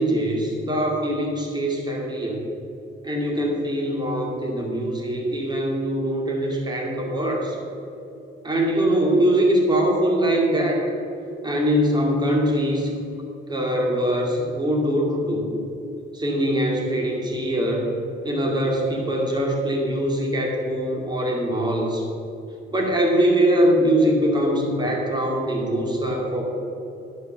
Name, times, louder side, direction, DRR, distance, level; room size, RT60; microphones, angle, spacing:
voice 1, 0.0-2.4 3.0-7.6 8.4-10.9 11.4-12.9 13.5-15.5 16.1-17.9 18.2-22.0 22.7-26.4, right 1 dB, 20° right, 0 dB, 2.4 m, -22 dB
10.5 x 5.3 x 6.4 m, 2.8 s
cardioid pair, 90°, 20 cm